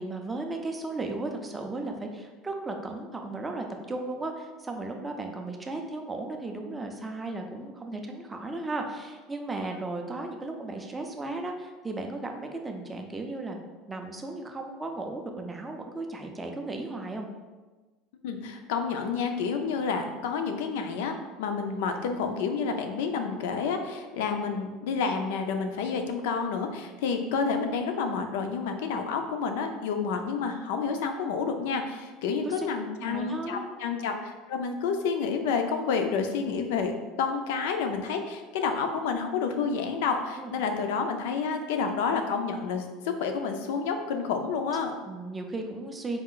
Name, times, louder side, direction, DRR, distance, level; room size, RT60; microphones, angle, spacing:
voice 1, 0.0-13.6 13.9-17.3 32.3-32.7 33.0-33.6 40.4-40.5 45.1-46.2, right 2 dB, 10° right, 3 dB, 0.3 m, -35 dB
voice 2, 18.2-36.9 37.2-45.0, left 5 dB, 80° left, 6 dB, 0.5 m, -29 dB
4.3 x 2.4 x 3.7 m, 1.3 s
cardioid pair, 175°, 0 cm